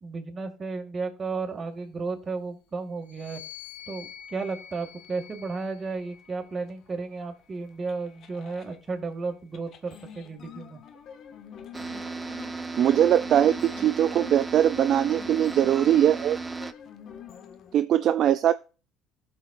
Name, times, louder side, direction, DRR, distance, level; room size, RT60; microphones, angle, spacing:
voice 1, 0.0-3.4 3.9-10.8, right 4 dB, 35° right, 3 dB, 2.1 m, -33 dB
sound 1, 3.0-6.6 7.4-9.0, left 9 dB, 90° left, 1.6 m, -48 dB
sound 2, 4.2-8.8 9.5-17.8, left 8 dB, 55° left, 1.0 m, -47 dB
sound 3, 11.7-16.7, right 3 dB, 15° right, 0.7 m, -35 dB
voice 2, 12.8-16.4 17.7-18.5, right 10 dB, 55° right, 13 dB, 0.3 m, -21 dB
16.0 x 6.1 x 2.5 m, 0.35 s
supercardioid pair, 85°, 0 cm